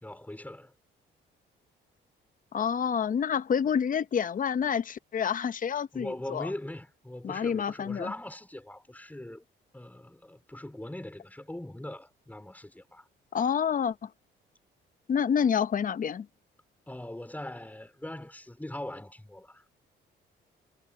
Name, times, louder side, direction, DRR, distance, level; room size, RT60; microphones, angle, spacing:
voice 1, 0.0-0.7 5.9-9.5 9.7-13.1 16.9-19.6, left 1 dB, 10° left, 4.1 m, -41 dB
voice 2, 2.5-6.5 7.2-8.1 13.3-14.1 15.1-16.3, left 7 dB, 45° left, 0.7 m, -28 dB
cardioid pair, 90°, 20 cm